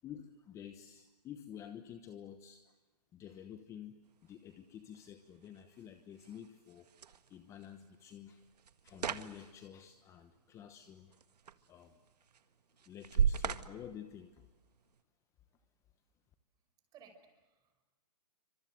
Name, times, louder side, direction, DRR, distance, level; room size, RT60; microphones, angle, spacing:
voice 1, 0.0-2.7 3.1-6.9 7.3-8.4 8.8-11.2 11.7-11.9 12.9-14.4, left 9 dB, 15° left, 9 dB, 1.1 m, -50 dB
sound 1, 4.0-15.0, right 7 dB, 75° right, 1.7 m, -40 dB
voice 2, 16.9-17.8, right 6 dB, 20° right, 5 dB, 5.6 m, -61 dB
28.5 x 25.5 x 8.0 m, 1.2 s
hypercardioid pair, 155°, 21 cm